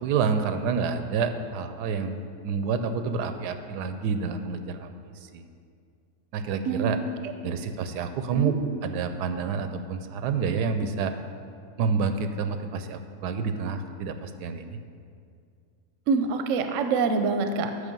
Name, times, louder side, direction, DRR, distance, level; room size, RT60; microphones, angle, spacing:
voice 1, 0.0-4.9 5.3-5.5 6.3-7.0 7.4-11.1 11.8-14.8, right 5 dB, 85° right, 8 dB, 1.2 m, -28 dB
voice 2, 16.1-17.7, right 4 dB, 65° right, 7 dB, 0.9 m, -25 dB
8.3 x 6.4 x 5.4 m, 2.3 s
omnidirectional pair, 1.7 m